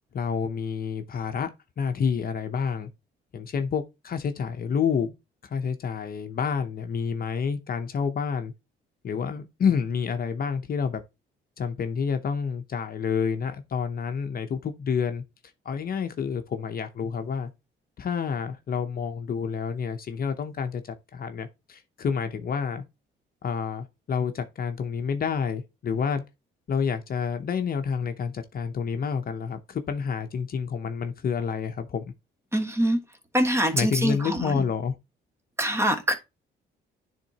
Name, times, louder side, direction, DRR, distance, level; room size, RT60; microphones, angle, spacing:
voice 1, 0.1-1.5 1.8-2.9 3.3-5.1 5.4-8.5 9.0-11.0 11.6-15.2 15.6-17.5 18.0-22.8 23.4-26.2 26.7-32.0 33.7-35.0, left 6 dB, 50° left, 0.7 m, -29 dB
voice 2, 32.5-33.0 33.3-34.7 35.6-36.1, right 1 dB, 15° right, 1.4 m, -24 dB
10.0 x 3.6 x 2.8 m
cardioid pair, 90°, 20 cm